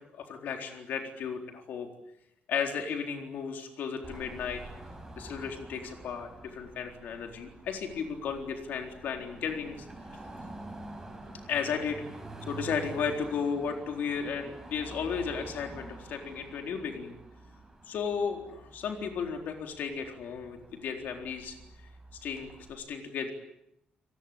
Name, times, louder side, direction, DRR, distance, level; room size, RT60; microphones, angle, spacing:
voice 1, 0.1-1.9 2.5-4.6 5.2-9.9 11.5-12.0 12.5-17.2 17.9-21.6 22.2-23.3, left 6 dB, 70° left, 4 dB, 4.0 m, -34 dB
Car passing by / Traffic noise roadway noise / Engine, 4.0-22.7, right 2 dB, 15° right, 6.0 m, -47 dB
29.0 x 20.0 x 8.8 m, 0.81 s
wide cardioid pair, 170°, 3 cm